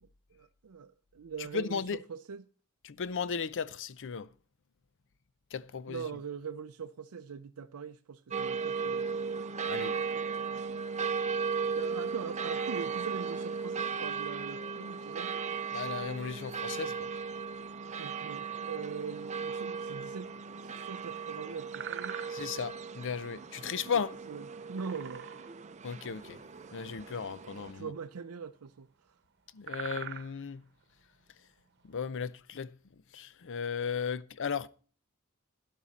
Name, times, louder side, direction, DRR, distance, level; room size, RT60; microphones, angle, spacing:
voice 1, 0.0-2.5 5.9-9.1 11.8-15.3 18.0-20.3 20.6-22.2 24.3-25.3 27.7-29.1, right 6 dB, 85° right, 0.5 m, -42 dB
voice 2, 1.4-2.0 2.8-4.3 5.5-6.0 9.7-9.9 15.7-17.1 22.3-24.2 25.8-26.4 26.7-27.9 29.5-30.7 31.8-32.8 33.1-34.7, left 6 dB, 60° left, 0.6 m, -35 dB
sound 1, 8.3-27.7, right 5 dB, 30° right, 0.6 m, -36 dB
sound 2, 20.1-20.6 21.0-21.3 21.6-22.8 24.6-25.7 26.0-26.1 26.4-26.7 27.6-28.7 29.0-29.1 29.4-32.2, right 9 dB, 50° right, 1.0 m, -43 dB
12.5 x 10.5 x 4.1 m
head